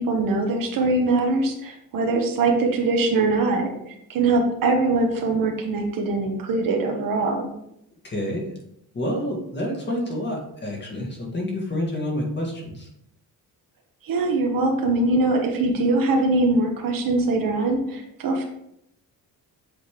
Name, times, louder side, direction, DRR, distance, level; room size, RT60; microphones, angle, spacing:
voice 1, 0.0-7.5 14.0-18.4, right 2 dB, 65° right, 2 dB, 1.2 m, -22 dB
voice 2, 8.0-8.4 8.9-12.9, left 1 dB, 30° left, -1 dB, 1.8 m, -28 dB
7.8 x 4.2 x 3.6 m, 0.78 s
cardioid pair, 150°, 37 cm